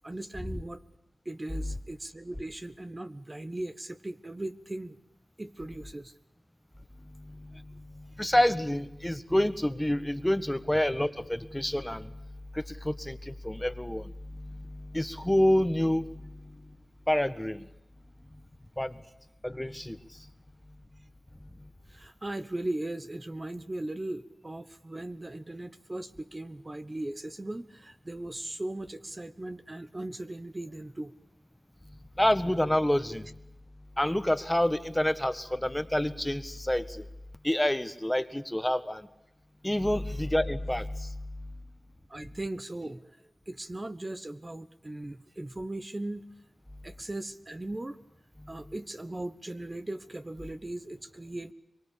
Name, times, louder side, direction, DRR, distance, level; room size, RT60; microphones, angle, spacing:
voice 1, 0.0-0.8 1.2-5.0 5.4-6.1 7.5-7.6 21.9-31.1 40.0-40.2 42.1-46.2 46.8-48.0 48.5-51.5, right 1 dB, 30° right, 11 dB, 1.2 m, -38 dB
voice 2, 8.2-12.1 12.8-13.2 13.4-14.0 14.9-16.1 17.1-17.6 18.8-18.9 19.4-20.0 32.2-33.2 34.0-37.0 37.4-39.0 39.6-41.1, left 1 dB, 10° left, 12 dB, 1.6 m, -27 dB
24.0 x 23.5 x 8.7 m, 0.88 s
cardioid pair, 55°, 0 cm